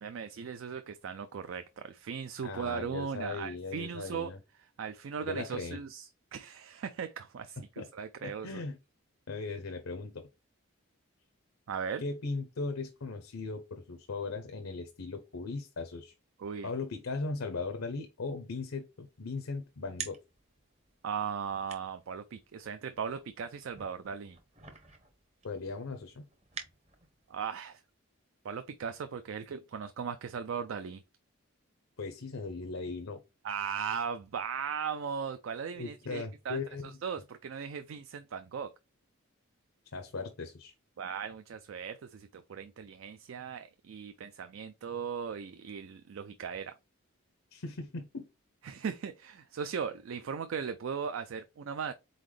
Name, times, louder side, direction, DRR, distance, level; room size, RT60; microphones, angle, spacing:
voice 1, 0.0-4.3 4.8-8.6 11.7-12.0 16.4-16.7 21.0-24.4 27.3-27.8 28.4-31.0 33.4-36.6 37.0-38.7 41.0-46.7 48.6-51.9, right 6 dB, 65° right, 0.4 m, -38 dB
voice 2, 2.4-4.4 5.2-5.8 7.8-7.9 8.2-8.8 9.3-10.3 12.0-16.1 16.6-20.2 25.4-26.3 32.0-33.2 35.7-37.0 39.9-40.7 47.5-48.3, left 3 dB, 80° left, 0.7 m, -38 dB
sound 1, 19.0-27.3, right 6 dB, 30° right, 0.8 m, -50 dB
4.1 x 3.9 x 3.2 m
head